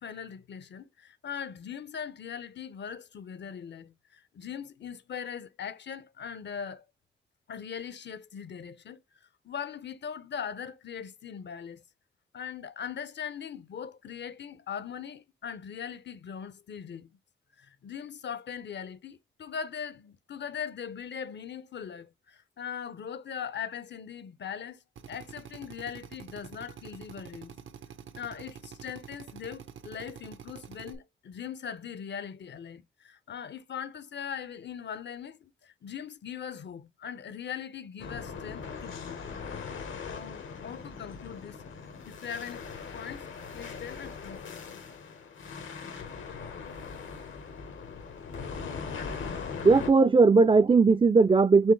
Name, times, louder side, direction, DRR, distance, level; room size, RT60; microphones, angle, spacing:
voice 1, 0.0-6.9 7.5-11.8 12.3-17.1 17.6-27.6 28.1-39.2 40.1-41.6 42.0-42.6 42.9-43.3 43.5-44.8, left 7 dB, 60° left, 0.6 m, -40 dB
Drill, 25.0-31.0, right 8 dB, 75° right, 0.7 m, -47 dB
sound 1, 38.0-49.9, left 5 dB, 80° left, 1.1 m, -40 dB
voice 2, 49.6-51.7, right 4 dB, 25° right, 0.4 m, -19 dB
4.6 x 3.0 x 3.1 m
supercardioid pair, 40°, 20 cm